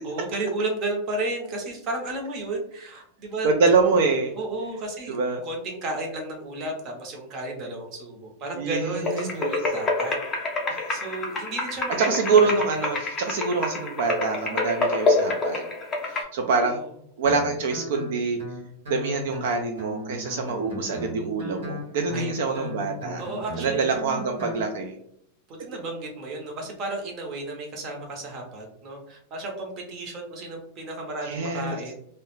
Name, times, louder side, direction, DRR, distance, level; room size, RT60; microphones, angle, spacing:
voice 1, 0.0-3.5 4.3-5.2 5.4-10.4 10.9-12.5 16.1-16.9 22.1-22.7 23.2-24.1 25.5-31.9, right 2 dB, 30° right, 1 dB, 0.7 m, -33 dB
voice 2, 3.4-4.3 5.1-5.4 8.6-9.6 12.0-15.6 16.0-16.8 17.2-18.4 18.9-23.2 23.6-24.9 31.3-31.8, right 4 dB, 60° right, 3 dB, 0.3 m, -25 dB
sound 1, 9.0-16.2, left 2 dB, 15° left, 0.5 m, -27 dB
Guitar, 17.2-24.6, left 1 dB, 80° right, 0.9 m, -37 dB
2.3 x 2.0 x 3.0 m, 0.69 s
supercardioid pair, 160°, 0 cm